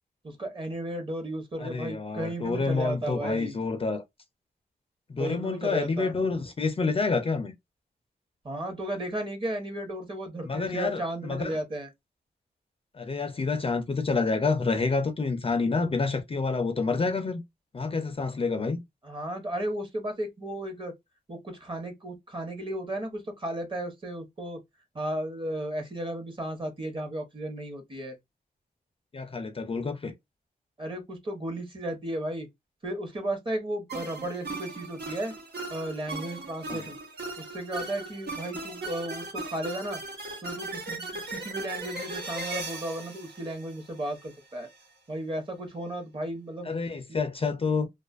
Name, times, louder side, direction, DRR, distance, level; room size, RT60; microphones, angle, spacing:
voice 1, 0.2-3.6 5.2-6.1 8.4-11.9 19.0-20.9 21.3-24.6 24.9-28.2 30.8-32.5 32.8-35.3 35.7-37.0 37.4-40.0 40.4-44.7 45.1-46.7 47.1-47.2, right 1 dB, 30° right, 0.9 m, -34 dB
voice 2, 1.6-4.0 5.1-7.5 10.4-11.6 12.9-17.4 17.7-18.8 29.1-30.1 36.7-36.8 46.6-47.9, left 4 dB, 35° left, 0.4 m, -28 dB
sound 1, 33.9-44.3, right 2 dB, 90° right, 1.2 m, -38 dB
2.5 x 2.3 x 2.3 m
wide cardioid pair, 115°, 17 cm